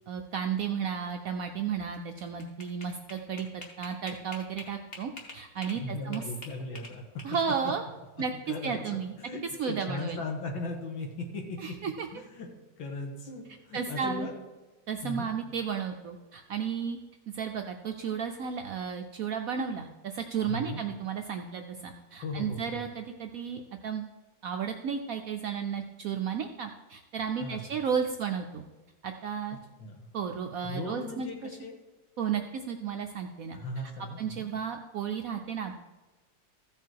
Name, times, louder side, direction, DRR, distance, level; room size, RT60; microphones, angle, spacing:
voice 1, 0.1-6.2 7.2-7.8 8.2-9.1 9.6-10.2 11.6-12.1 13.7-14.3 14.9-17.0 17.3-24.0 24.4-28.6 29.0-29.6 30.1-31.3 32.2-33.6 34.2-35.7, right 7 dB, 70° right, 5 dB, 0.8 m, -33 dB
sound 1, 1.9-5.8 6.1-7.7, left 2 dB, 30° left, 1.6 m, -45 dB
voice 2, 5.8-7.0 8.5-8.8 9.2-11.7 12.1-12.5 12.8-14.3 15.0-15.3 20.4-20.8 22.2-22.8 27.4-27.6 29.8-30.1 30.6-31.8 33.5-34.5, left 2 dB, 85° left, 1 dB, 2.4 m, -37 dB
14.5 x 5.4 x 4.6 m, 1.1 s
omnidirectional pair, 2.1 m